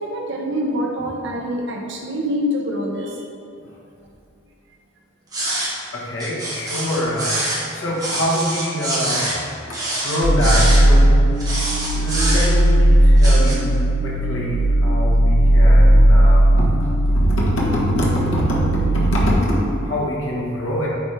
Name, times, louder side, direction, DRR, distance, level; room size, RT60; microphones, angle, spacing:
voice 1, 0.0-3.3, equal, 60° right, 0 dB, 0.9 m, -25 dB
sound 1, 5.3-5.7 6.2-7.6 8.0-9.4 9.7-10.8 11.4-12.7 13.2-13.5, right 1 dB, 20° right, 1.3 m, -25 dB
voice 2, 5.9-7.4 7.7-9.3 10.0-11.1 11.9-20.9, equal, 70° left, -5 dB, 1.4 m, -24 dB
sound 2, 10.2-19.3, right 1 dB, 90° left, 0.6 m, -16 dB
8.2 x 4.3 x 3.4 m, 2.6 s
head